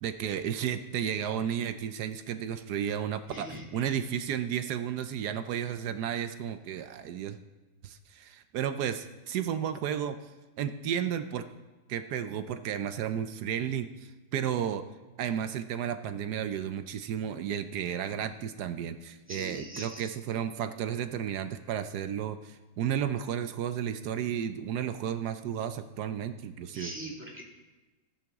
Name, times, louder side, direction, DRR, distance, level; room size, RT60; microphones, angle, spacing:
voice 1, 0.0-3.5 3.7-7.4 7.8-10.2 10.6-11.5 11.9-13.9 14.3-14.8 15.2-26.9, right 9 dB, 70° right, 10 dB, 1.1 m, -33 dB
voice 2, 3.3-3.8 19.3-20.1 26.7-27.4, right 1 dB, 5° right, -3 dB, 2.1 m, -41 dB
15.0 x 10.0 x 3.6 m, 1.2 s
omnidirectional pair, 1.9 m